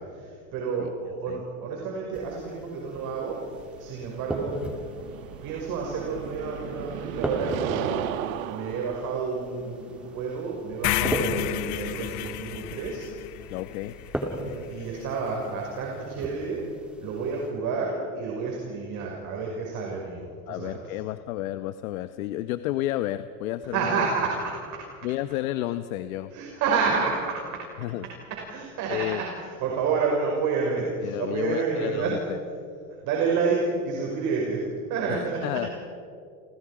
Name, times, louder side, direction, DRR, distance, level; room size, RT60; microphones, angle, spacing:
voice 1, 0.0-3.5 3.8-4.8 5.4-8.1 8.5-13.1 14.3-16.6 17.0-20.9 23.7-24.9 26.3-27.6 28.3-32.2 33.0-34.6 34.9-35.7, right 5 dB, 45° right, -1 dB, 5.8 m, -29 dB
sound 1, 2.1-17.5, right 1 dB, 5° right, 3.3 m, -38 dB
sound 2, 2.9-11.8, right 10 dB, 75° right, 1.7 m, -37 dB
sound 3, 10.8-15.0, left 17 dB, 45° left, 0.8 m, -31 dB
voice 2, 13.5-13.9 20.5-24.1 25.0-26.3 27.8-28.0 28.9-29.2 31.0-32.2 35.1-35.7, left 14 dB, 75° left, 11 dB, 1.0 m, -31 dB
29.5 x 29.5 x 5.0 m, 2.3 s
supercardioid pair, 135°, 41 cm